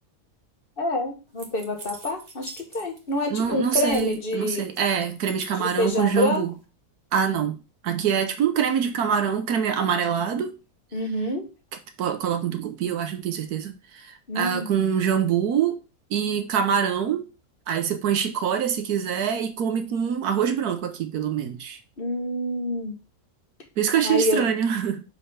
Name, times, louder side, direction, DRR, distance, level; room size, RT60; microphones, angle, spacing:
voice 1, 0.8-4.7 5.6-6.4 10.9-11.5 14.3-14.7 22.0-22.9 24.0-24.4, left 1 dB, 35° left, 1.6 m, -27 dB
sound 1, 1.4-3.1 3.4-4.3 4.7-6.3, right 3 dB, 30° right, 1.2 m, -43 dB
voice 2, 3.3-6.5 7.1-10.5 12.0-15.8 16.1-17.3 17.7-21.8 23.8-25.0, right 8 dB, 80° right, 1.4 m, -25 dB
5.3 x 4.6 x 5.5 m
omnidirectional pair, 1.6 m